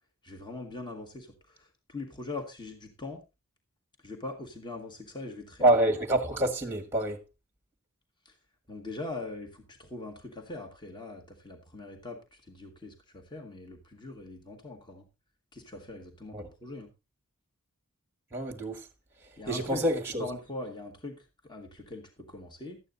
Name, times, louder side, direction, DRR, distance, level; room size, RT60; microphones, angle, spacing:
voice 1, 0.2-3.2 4.0-5.7 8.3-8.4 8.7-15.1 15.5-16.9 19.4-19.8 20.2-22.8, left 2 dB, 20° left, 1.8 m, -42 dB
voice 2, 5.6-7.2 16.3-16.4 18.3-18.8 19.5-20.2, right 1 dB, 10° right, 1.7 m, -26 dB
13.0 x 9.0 x 3.9 m
head